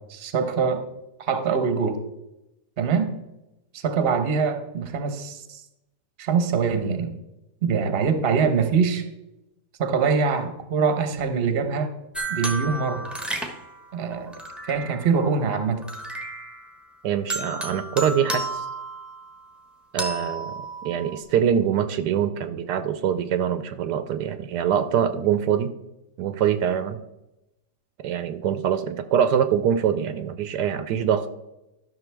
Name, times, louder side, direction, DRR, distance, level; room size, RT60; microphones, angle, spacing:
voice 1, 0.1-0.8 1.2-2.0 2.8-3.1 3.7-5.6 6.2-7.1 7.6-9.0 9.8-11.9 12.3-13.1 13.9-14.4 14.6-15.8, right 5 dB, 45° right, 9 dB, 1.0 m, -23 dB
sound 1, 12.1-15.2 15.8-16.8 17.3-19.5 20.0-21.2, right 2 dB, ahead, 0.8 m, -33 dB
voice 2, 17.0-18.7 19.9-25.7 26.2-27.0 28.0-31.3, right 8 dB, 75° right, 11 dB, 1.1 m, -24 dB
12.5 x 6.2 x 3.4 m, 0.94 s
omnidirectional pair, 1.8 m